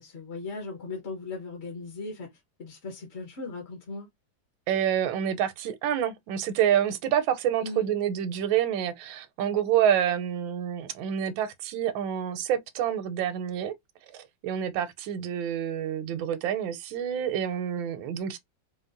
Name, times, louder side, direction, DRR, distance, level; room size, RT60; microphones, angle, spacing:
voice 1, 0.0-4.1 7.6-7.9, left 3 dB, 50° left, 0.8 m, -38 dB
voice 2, 4.7-13.7 14.1-18.4, right 9 dB, 80° right, 1.3 m, -27 dB
4.0 x 2.0 x 2.5 m
omnidirectional pair, 2.1 m